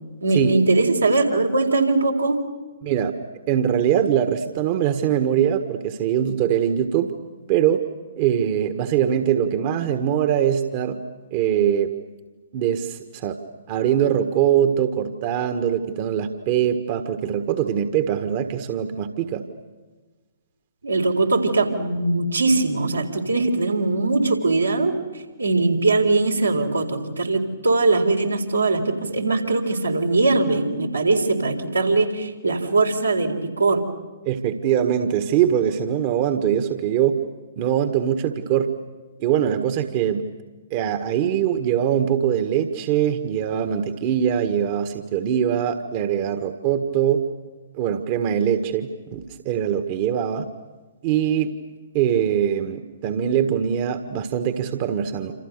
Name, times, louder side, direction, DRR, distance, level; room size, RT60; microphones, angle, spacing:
voice 1, 0.2-2.4 20.8-24.9 25.4-33.8, right 3 dB, 80° right, 1 dB, 4.1 m, -21 dB
voice 2, 2.8-3.1 3.5-7.1 7.5-7.8 8.2-11.0 11.3-11.9 12.5-13.4 13.7-19.4 34.2-37.2 37.6-38.7 39.2-40.2 40.7-47.2 47.7-50.5 51.0-51.5 51.9-55.3, right 9 dB, 35° right, 8 dB, 1.6 m, -22 dB
27.5 x 27.5 x 6.8 m, 1.3 s
figure-of-eight pair, 120°, 0 cm